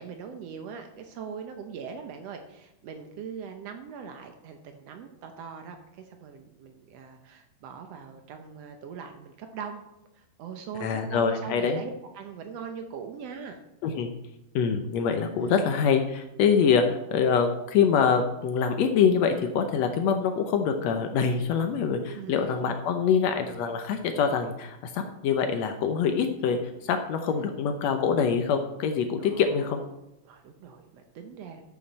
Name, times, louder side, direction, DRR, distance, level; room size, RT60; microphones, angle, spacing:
voice 1, 0.0-9.8 10.1-13.6 15.4-15.7 22.1-22.6 27.3-27.5 29.2-29.9 30.2-31.6, right 6 dB, 85° right, 5 dB, 1.4 m, -41 dB
voice 2, 10.8-11.8 13.8-14.1 14.5-29.8, left 6 dB, 85° left, 6 dB, 1.5 m, -25 dB
12.0 x 8.2 x 4.2 m, 0.87 s
omnidirectional pair, 4.2 m